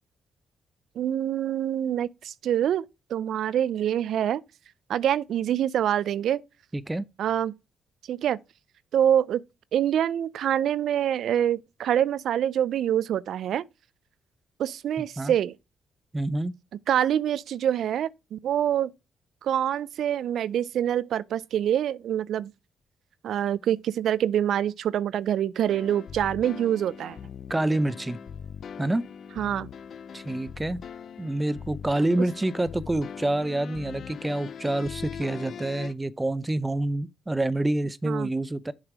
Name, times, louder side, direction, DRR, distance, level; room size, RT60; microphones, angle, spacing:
voice 1, 1.0-2.8 3.1-4.4 4.9-6.4 7.2-7.5 8.1-8.4 8.9-9.4 9.7-13.7 14.6-15.5 16.9-18.9 19.4-22.5 23.2-27.2 29.4-29.7 32.2-32.3 38.0-38.3, right 10 dB, 70° right, 0.3 m, -25 dB
voice 2, 6.7-7.0 15.0-15.3 16.1-16.5 27.5-28.2 28.8-29.0 30.1-30.8 31.2-38.7, right 1 dB, 15° right, 0.6 m, -27 dB
sound 1, 25.6-35.9, left 7 dB, 60° left, 0.5 m, -41 dB
7.3 x 3.3 x 6.0 m
supercardioid pair, 50°, 0 cm